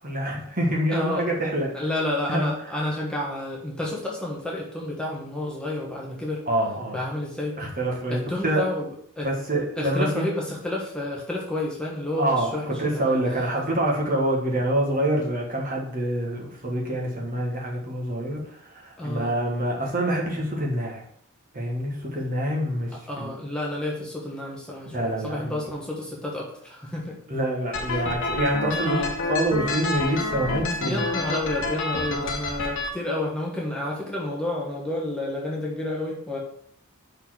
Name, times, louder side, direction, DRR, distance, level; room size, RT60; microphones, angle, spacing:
voice 1, 0.0-1.7 2.3-2.8 6.5-7.0 7.6-8.6 9.2-10.2 12.2-21.0 21.5-23.3 24.9-25.6 27.3-29.0 29.3-31.1, right 1 dB, 40° right, -2 dB, 1.5 m, -26 dB
voice 2, 0.9-1.3 1.7-6.4 6.9-7.6 8.1-8.9 9.2-9.3 9.8-13.2 19.0-19.3 23.1-27.2 27.9-28.4 28.7-29.1 30.8-36.4, left 1 dB, 5° left, -4 dB, 1.2 m, -30 dB
sound 1, 27.7-32.9, left 2 dB, 55° left, 1.1 m, -28 dB
5.5 x 4.4 x 6.0 m, 0.66 s
head